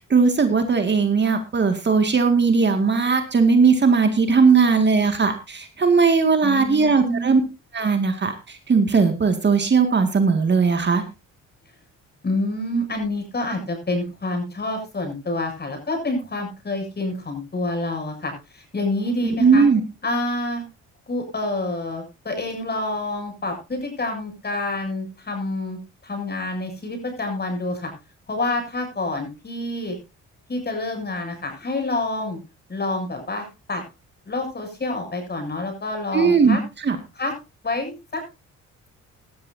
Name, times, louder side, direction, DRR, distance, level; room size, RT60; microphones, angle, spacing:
voice 1, 0.1-7.4 7.7-11.0 19.2-19.8 36.1-36.6 36.8-37.0, right 5 dB, 35° right, 6 dB, 2.2 m, -18 dB
voice 2, 6.4-7.3 12.2-19.6 20.0-20.6 21.1-25.8 26.0-27.9 28.3-29.9 30.5-32.4 32.7-33.8 34.3-36.6 37.2-37.3 37.6-38.2, left 2 dB, 35° left, 4 dB, 7.7 m, -27 dB
17.5 x 12.5 x 2.8 m, 0.28 s
cardioid pair, 90°, 30 cm